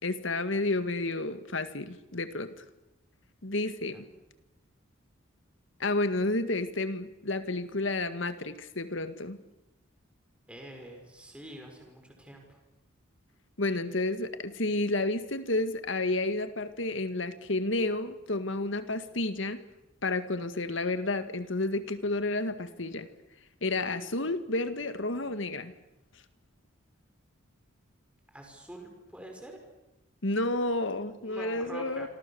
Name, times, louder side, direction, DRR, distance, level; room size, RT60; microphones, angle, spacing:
voice 1, 0.0-2.6 3.4-4.0 5.8-9.4 13.6-19.6 20.0-23.1 23.6-25.7 30.2-32.1, left 2 dB, 65° left, 10 dB, 1.9 m, -31 dB
voice 2, 10.5-12.6 28.3-29.6 31.2-32.1, right 1 dB, 5° right, 2 dB, 5.0 m, -46 dB
28.5 x 25.5 x 7.1 m, 0.95 s
head